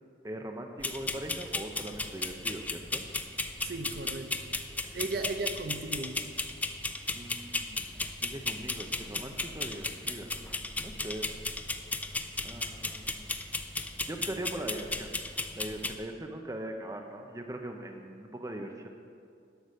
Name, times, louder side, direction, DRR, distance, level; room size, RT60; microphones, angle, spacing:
voice 1, 0.2-3.0 4.8-5.0 7.1-10.3 10.8-11.3 12.4-13.4 14.0-15.1 15.6-18.9, right 1 dB, 20° right, 3 dB, 0.7 m, -40 dB
sound 1, 0.8-15.9, left 3 dB, 10° left, 0.4 m, -35 dB
voice 2, 3.6-4.5 4.9-6.2, right 3 dB, 55° right, 6 dB, 0.8 m, -36 dB
11.5 x 6.7 x 6.6 m, 2.4 s
head